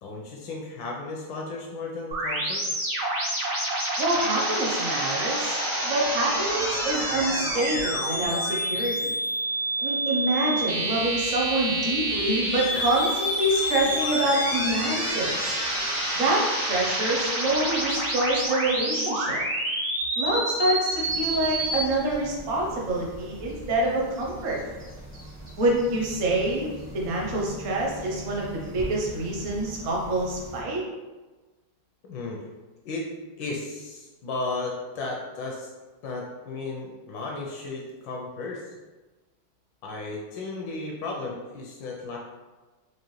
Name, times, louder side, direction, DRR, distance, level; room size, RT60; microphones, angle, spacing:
voice 1, 0.0-2.6 32.1-32.4 32.8-33.1 33.4-35.7 36.0-38.6 39.8-42.2, left 3 dB, 75° left, -1 dB, 1.1 m, -34 dB
sound 1, 2.1-21.8, right 1 dB, 85° right, 1.9 m, -28 dB
voice 2, 4.0-5.6 5.8-9.1 9.8-15.6 16.1-19.4 20.2-24.6 25.6-26.7 26.9-28.5 28.7-30.8, right 1 dB, 55° right, -2 dB, 0.9 m, -26 dB
sound 2, 21.0-30.6, right 1 dB, 10° left, 0.4 m, -41 dB
4.8 x 2.5 x 3.1 m, 1.2 s
omnidirectional pair, 2.3 m